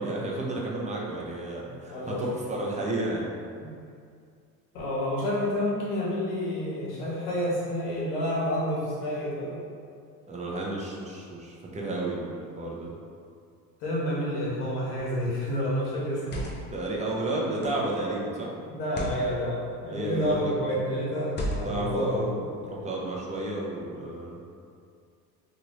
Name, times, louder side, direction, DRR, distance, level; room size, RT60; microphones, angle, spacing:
voice 1, 0.0-3.4 10.3-12.9 16.7-18.5 19.9-20.5 21.6-24.4, right 2 dB, 15° right, -4 dB, 0.6 m, -32 dB
voice 2, 1.8-2.3 3.6-3.7 4.7-9.6 13.8-16.4 18.7-22.2, equal, 80° left, -6 dB, 1.2 m, -29 dB
sound 1, 14.9-15.2 16.0-16.8 17.6-17.9 18.8-19.2 20.1-20.5 21.3-21.9, equal, 25° left, 0.6 m, -35 dB
3.0 x 2.6 x 3.0 m, 2.3 s
hypercardioid pair, 80°, 46 cm